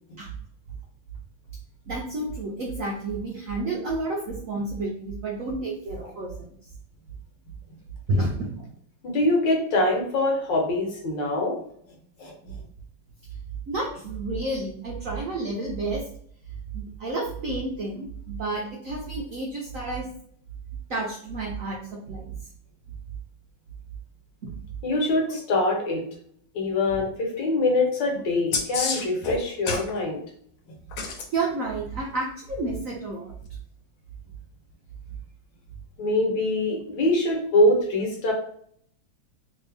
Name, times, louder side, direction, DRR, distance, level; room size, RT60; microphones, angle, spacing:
voice 1, 1.9-6.5 8.1-8.6 13.7-16.1 16.7-20.1 20.9-22.3 24.4-24.5 26.9-27.0 31.3-33.3, right 2 dB, 85° right, -1 dB, 0.7 m, -30 dB
voice 2, 9.0-11.6 12.2-12.6 24.8-26.0 26.5-30.2 36.0-38.3, left 2 dB, 65° left, 1 dB, 1.5 m, -24 dB
sound 1, 28.5-29.9 30.9-31.3 33.4-33.5, left 4 dB, 85° left, 1.5 m, -28 dB
3.2 x 2.7 x 3.3 m, 0.62 s
omnidirectional pair, 2.2 m